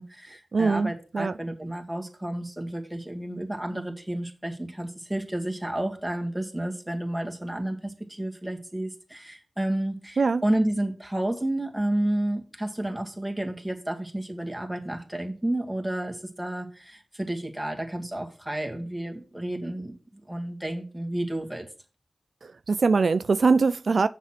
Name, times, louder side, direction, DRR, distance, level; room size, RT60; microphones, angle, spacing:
voice 1, 0.0-20.0 20.3-21.7, right 1 dB, 5° right, 2.1 m, -31 dB
voice 2, 0.5-1.3 10.2-10.4 22.4-24.1, right 4 dB, 70° right, 0.3 m, -22 dB
7.1 x 6.1 x 5.9 m
cardioid pair, 55°, 0 cm